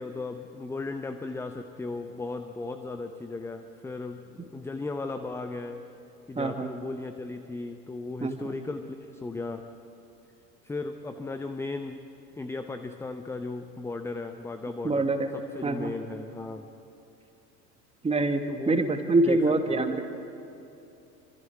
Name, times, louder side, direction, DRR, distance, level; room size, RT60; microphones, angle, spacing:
voice 1, 0.0-5.8 6.3-9.6 10.6-12.0 12.4-15.1 15.3-16.7 18.5-18.8 19.3-19.4 19.7-19.8, left 3 dB, 5° left, 8 dB, 0.7 m, -36 dB
voice 2, 6.4-6.7 8.2-8.5 14.8-15.3 15.6-15.9 18.0-20.0, right 2 dB, 10° right, 7 dB, 1.6 m, -25 dB
27.0 x 24.5 x 4.7 m, 2.8 s
figure-of-eight pair, 80°, 48 cm